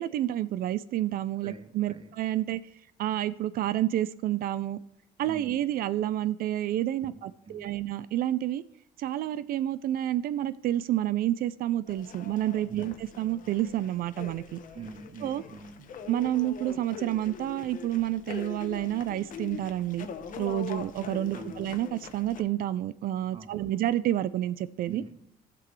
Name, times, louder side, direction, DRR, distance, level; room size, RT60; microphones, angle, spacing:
voice 1, 0.0-2.6 3.0-4.8 5.2-8.6 9.0-14.6 15.2-15.4 16.1-20.1 20.4-25.0, right 13 dB, 60° right, 0.4 m, -29 dB
voice 2, 1.4-2.1 5.2-5.6 7.0-7.1 7.5-7.8 12.7-12.9 14.7-15.9 21.3-21.6 23.3-23.7 24.9-25.2, right 5 dB, 30° right, 0.8 m, -45 dB
sound 1, 11.9-22.4, left 6 dB, 50° left, 0.9 m, -43 dB
13.5 x 6.0 x 3.1 m
cardioid pair, 110°, 17 cm